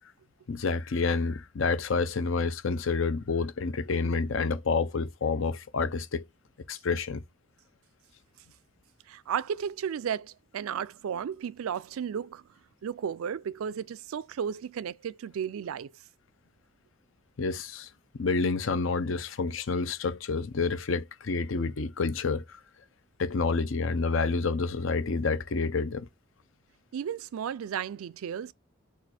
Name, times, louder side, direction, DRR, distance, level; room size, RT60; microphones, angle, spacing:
voice 1, 0.5-6.2 6.7-7.2 17.4-17.9 18.1-22.6 23.2-26.1, left 4 dB, 65° left, 0.6 m, -28 dB
voice 2, 9.1-12.4 12.8-15.9 26.9-28.5, right 8 dB, 85° right, 0.3 m, -34 dB
4.2 x 2.4 x 4.2 m
head